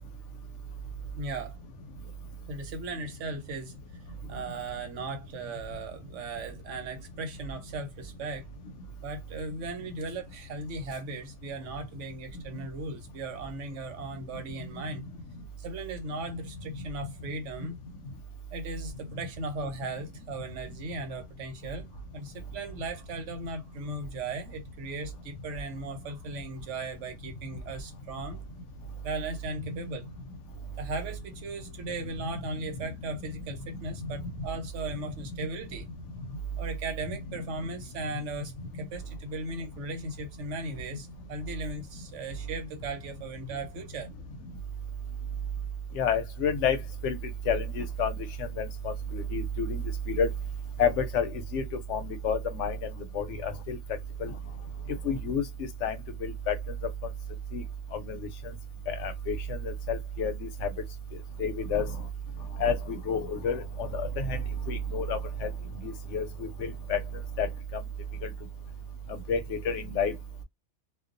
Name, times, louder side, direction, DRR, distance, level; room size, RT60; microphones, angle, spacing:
voice 1, 1.2-1.6 2.5-4.0 4.3-8.5 9.0-15.0 15.6-17.8 18.5-21.9 22.1-28.4 29.0-30.1 30.8-35.9 36.6-44.1, right 2 dB, 85° right, 1.1 m, -37 dB
voice 2, 46.0-46.8 47.0-47.2 47.5-48.2 48.6-50.3 50.8-51.6 51.9-52.8 53.1-53.8 54.2-54.3 55.0-55.4 55.8-56.0 56.2-56.5 57.5-57.6 57.9-58.2 58.9-60.5 61.4-61.9 62.6-64.4 64.7-65.5 65.8-66.2 66.6-67.0 67.4-67.5 68.2-68.3 69.3-70.1, left 4 dB, 85° left, 0.9 m, -29 dB
2.3 x 2.2 x 2.5 m
omnidirectional pair, 1.2 m